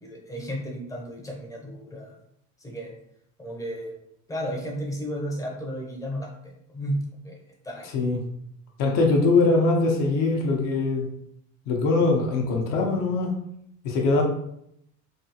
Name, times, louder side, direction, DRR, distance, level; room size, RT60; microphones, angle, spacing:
voice 1, 0.0-2.1 2.6-3.0 3.4-3.9 4.3-6.3 6.7-7.4 7.6-8.2, equal, 10° left, -1 dB, 0.6 m, -33 dB
voice 2, 8.8-11.1 11.7-13.3 13.8-14.2, left 3 dB, 60° left, 1 dB, 0.8 m, -22 dB
3.4 x 2.4 x 2.8 m, 0.75 s
cardioid pair, 135°, 37 cm